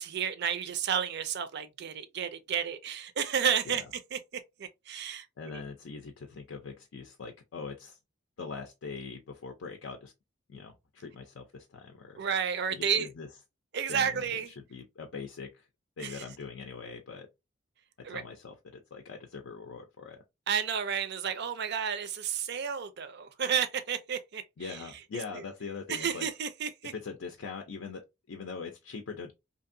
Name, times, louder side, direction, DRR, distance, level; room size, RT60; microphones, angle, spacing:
voice 1, 0.0-3.8 4.1-4.2 4.6-5.6 12.2-13.1 13.7-14.5 16.0-16.2 18.0-18.2 20.5-24.4 25.3-25.4 25.9-26.9, right 7 dB, 55° right, 0.4 m, -31 dB
voice 2, 5.4-8.0 8.4-10.1 10.5-12.2 12.7-13.3 13.9-15.7 16.0-17.3 18.0-20.2 24.6-26.3 26.9-29.3, left 5 dB, 70° left, 0.5 m, -42 dB
2.8 x 2.5 x 2.5 m
head